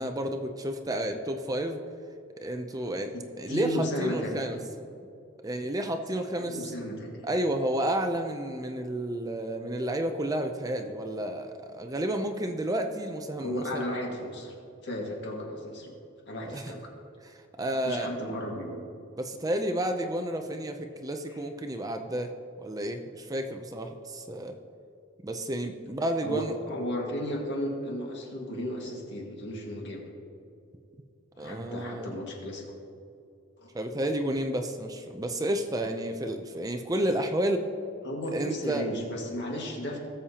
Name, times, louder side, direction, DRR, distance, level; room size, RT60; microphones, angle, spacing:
voice 1, 0.0-1.8 2.4-4.6 5.4-6.7 7.2-13.8 16.4-16.7 17.2-18.1 19.2-22.3 22.6-24.6 25.2-26.5 31.4-32.1 33.7-37.7 38.3-38.9 39.5-39.6, right 1 dB, 20° right, 6 dB, 0.5 m, -31 dB
voice 2, 3.1-4.7 6.1-7.2 13.4-14.5 14.8-15.9 16.3-16.9 17.8-18.8 26.2-30.0 31.4-32.6 33.6-33.7 38.0-40.0, equal, 60° left, -1 dB, 1.9 m, -34 dB
18.5 x 7.1 x 2.9 m, 2.5 s
head